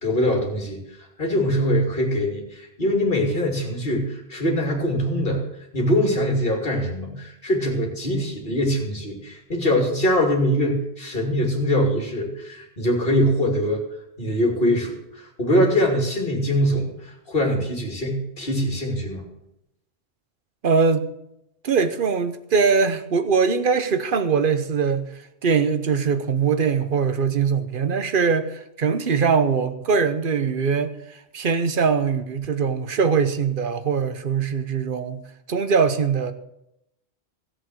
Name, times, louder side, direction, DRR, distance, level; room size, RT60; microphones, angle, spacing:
voice 1, 0.0-0.8 1.2-5.4 5.7-13.8 14.2-19.2, equal, 55° left, 2.9 m, -23 dB
voice 2, 20.6-21.0 21.6-35.2 35.5-36.3, right 5 dB, 55° right, 1.0 m, -22 dB
14.0 x 8.0 x 6.3 m
omnidirectional pair, 1.1 m